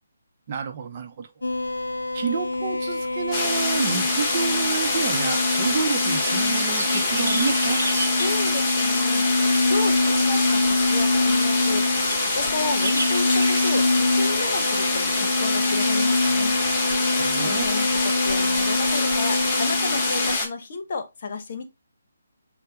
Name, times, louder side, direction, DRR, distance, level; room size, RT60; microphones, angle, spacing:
voice 1, 0.5-1.3 2.1-7.8 17.2-17.7, right 6 dB, 40° right, 0.7 m, -29 dB
sound 1, 1.4-20.4, left 2 dB, 85° left, 0.3 m, -25 dB
sound 2, 3.3-20.5, left 2 dB, 20° left, 1.4 m, -25 dB
sound 3, 6.0-16.8, right 2 dB, 80° right, 0.8 m, -36 dB
voice 2, 8.1-9.3 9.6-16.6 17.4-21.6, left 4 dB, 50° left, 1.0 m, -32 dB
6.6 x 2.2 x 2.8 m
figure-of-eight pair, 150°, 0 cm